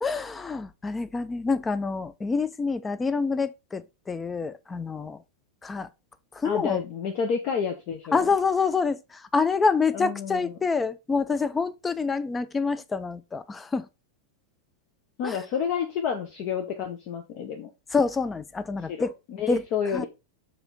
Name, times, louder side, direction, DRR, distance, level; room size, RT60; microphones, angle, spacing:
voice 1, 0.0-5.2 5.6-5.9 6.3-6.8 8.1-13.9 15.2-15.4 17.9-19.1 19.5-19.7 19.9-20.1, left 4 dB, 15° left, 0.5 m, -27 dB
voice 2, 6.4-8.2 9.9-10.5 15.2-17.7 18.9-20.1, left 7 dB, 40° left, 0.9 m, -30 dB
7.0 x 3.5 x 4.0 m
figure-of-eight pair, 90°, 0 cm